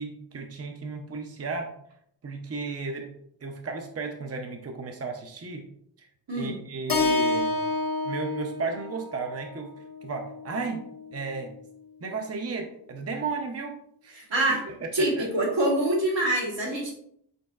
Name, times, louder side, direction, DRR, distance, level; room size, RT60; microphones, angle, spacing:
voice 1, 0.0-1.7 2.2-3.1 3.4-5.6 6.0-6.1 6.3-7.6 8.1-9.7 10.0-10.8 11.1-11.5 12.0-13.8 14.0-14.2 14.7-15.3, right 4 dB, 35° right, 3 dB, 0.6 m, -34 dB
Keyboard (musical), 6.9-11.1, left 3 dB, 50° left, 0.8 m, -29 dB
voice 2, 14.1-14.6 14.9-16.9, right 1 dB, 80° right, -2 dB, 1.4 m, -25 dB
5.2 x 3.7 x 2.3 m, 0.69 s
wide cardioid pair, 55°, 44 cm